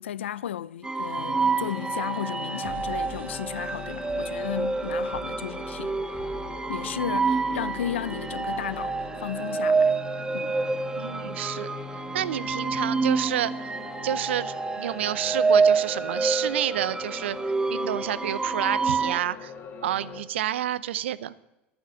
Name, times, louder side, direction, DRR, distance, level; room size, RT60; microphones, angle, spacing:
voice 1, 0.0-6.0 6.7-10.0 10.3-10.6, left 10 dB, 80° left, 0.4 m, -34 dB
sound 1, 0.8-19.2, right 4 dB, 10° right, 0.6 m, -28 dB
sound 2, 1.2-20.2, left 6 dB, 40° left, 2.2 m, -42 dB
sound 3, 2.3-16.2, right 4 dB, 30° right, 1.2 m, -47 dB
voice 2, 11.0-11.7 12.1-13.7 14.0-17.4 17.7-19.5 19.8-21.3, right 12 dB, 75° right, 0.5 m, -29 dB
11.0 x 9.6 x 6.2 m
hypercardioid pair, 80°, 6 cm